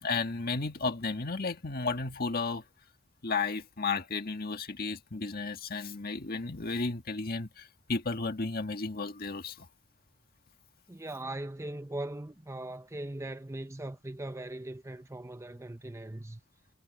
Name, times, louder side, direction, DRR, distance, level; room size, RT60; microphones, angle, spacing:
voice 1, 0.0-2.6 3.2-9.7, left 4 dB, 45° left, 1.7 m, -33 dB
voice 2, 10.9-16.4, right 1 dB, 15° right, 0.7 m, -40 dB
head